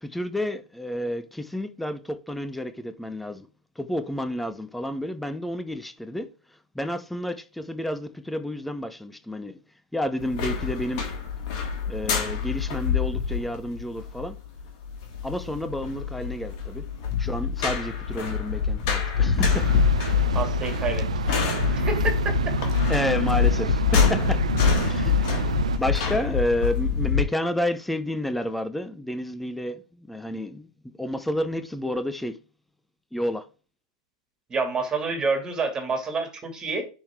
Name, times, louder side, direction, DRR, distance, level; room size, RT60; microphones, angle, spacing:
voice 1, 0.0-3.5 3.8-6.3 6.7-9.6 9.9-11.1 11.9-14.4 15.2-16.9 17.2-19.7 22.9-24.5 24.8-32.4 33.1-33.4, left 1 dB, 5° left, 0.8 m, -30 dB
sound 1, 10.2-27.2, left 6 dB, 45° left, 2.2 m, -25 dB
sound 2, 19.5-25.8, right 8 dB, 75° right, 0.5 m, -29 dB
voice 2, 20.3-21.1 21.7-22.3 34.5-36.9, right 4 dB, 20° right, 2.4 m, -28 dB
10.5 x 3.8 x 3.6 m
hypercardioid pair, 105°, 4 cm